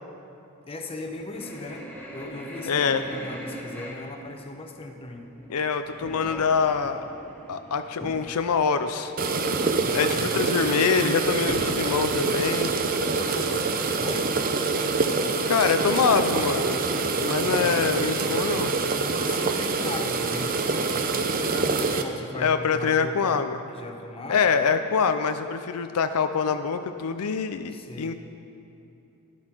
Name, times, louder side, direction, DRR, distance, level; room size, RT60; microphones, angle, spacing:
voice 1, 0.7-1.9 2.1-5.3 9.8-10.5 13.2-13.7 14.0-14.3 17.4-17.8 19.2-23.4 23.7-24.4 27.7-28.2, left 2 dB, 25° left, 3 dB, 0.9 m, -38 dB
sound 1, 0.7-8.4 8.8-8.9 9.3-9.4 9.6-10.1 10.4-14.2, equal, 5° left, 1.2 m, -42 dB
voice 2, 2.7-3.0 5.5-7.0 7.5-9.1 9.9-12.7 15.5-16.8 17.2-18.7 22.4-23.6 24.3-28.1, left 5 dB, 80° left, 9 dB, 0.5 m, -25 dB
sound 2, 9.2-22.0, right 4 dB, 40° right, 0.7 m, -25 dB
11.5 x 11.5 x 4.5 m, 2.8 s
head